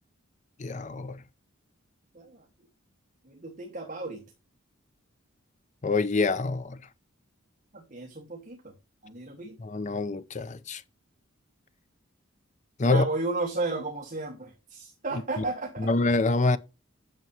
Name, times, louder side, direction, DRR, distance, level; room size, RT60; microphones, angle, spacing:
voice 1, 0.6-1.2 5.8-6.8 9.6-10.8 12.8-13.1 15.4-15.5 15.8-16.6, left 3 dB, 35° left, 0.5 m, -26 dB
voice 2, 2.1-2.4 3.2-4.2 7.7-8.7 9.0-9.6 12.8-15.9, right 3 dB, 35° right, 1.6 m, -34 dB
9.2 x 6.8 x 2.8 m
head